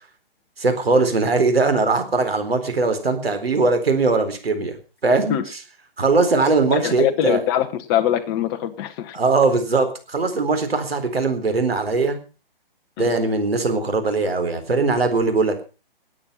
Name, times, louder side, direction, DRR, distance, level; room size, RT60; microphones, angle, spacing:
voice 1, 0.6-4.8 5.0-5.4 6.0-7.4 9.1-12.2 13.0-15.6, right 3 dB, 90° right, 7 dB, 4.1 m, -20 dB
voice 2, 6.7-9.2 13.0-13.1, left 11 dB, 25° left, 8 dB, 1.4 m, -22 dB
18.0 x 9.0 x 5.6 m, 0.35 s
hypercardioid pair, 145°, 29 cm